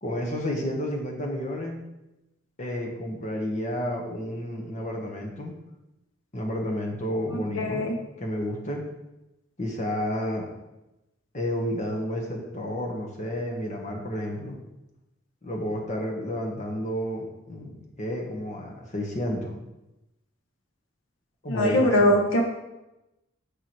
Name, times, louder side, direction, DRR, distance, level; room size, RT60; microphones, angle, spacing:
voice 1, 0.0-1.8 2.6-5.5 6.3-7.8 8.2-8.8 9.6-10.5 11.3-14.6 15.4-19.6 21.4-22.1, equal, 35° left, 0 dB, 1.2 m, -31 dB
voice 2, 7.3-7.9 21.5-22.4, left 1 dB, 85° left, 2 dB, 0.9 m, -22 dB
6.8 x 4.7 x 4.5 m, 0.95 s
head